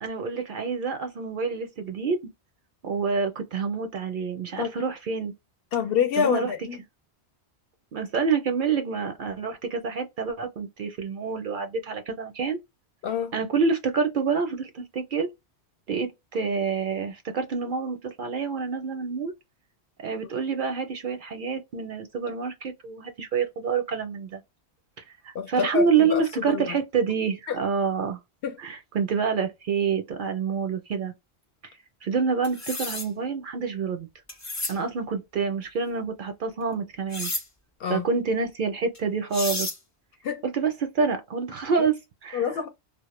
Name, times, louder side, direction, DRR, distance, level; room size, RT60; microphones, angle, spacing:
voice 1, 0.0-2.2 2.8-5.3 6.2-6.5 7.9-12.6 13.3-15.3 15.9-19.3 20.0-24.4 25.2-28.2 28.6-31.1 31.6-31.7 32.0-34.1 34.7-37.3 37.9-39.7 40.4-42.5, right 5 dB, 60° right, 0.6 m, -27 dB
voice 2, 5.7-6.8 13.0-13.3 25.3-26.8 27.5-27.6 28.4-28.6 37.8-38.1 40.2-40.4 41.7-41.9 42.3-42.7, left 7 dB, 65° left, 0.7 m, -27 dB
sound 1, 32.4-33.1 34.3-34.8 37.1-37.4 38.9-39.0 39.3-39.8, left 2 dB, 25° left, 0.3 m, -31 dB
2.0 x 2.0 x 3.0 m
omnidirectional pair, 1.1 m